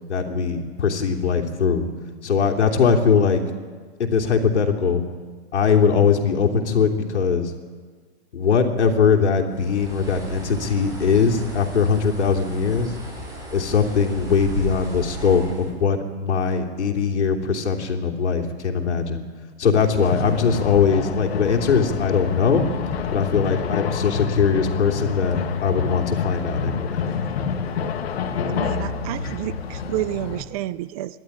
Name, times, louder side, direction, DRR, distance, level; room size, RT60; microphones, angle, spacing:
voice 1, 0.1-1.9 2.2-3.4 4.0-5.0 5.5-7.5 8.3-12.9 13.5-19.2 19.6-22.6 23.1-27.0, left 6 dB, 80° left, 3 dB, 3.3 m, -21 dB
Bird, 9.5-15.7, right 2 dB, 10° right, 6.2 m, -35 dB
sound 1, 20.0-30.4, left 6 dB, 60° left, 2.2 m, -27 dB
voice 2, 28.5-31.2, right 15 dB, 35° right, 16 dB, 0.6 m, -30 dB
26.5 x 12.0 x 9.9 m, 1.5 s
hypercardioid pair, 135°, 34 cm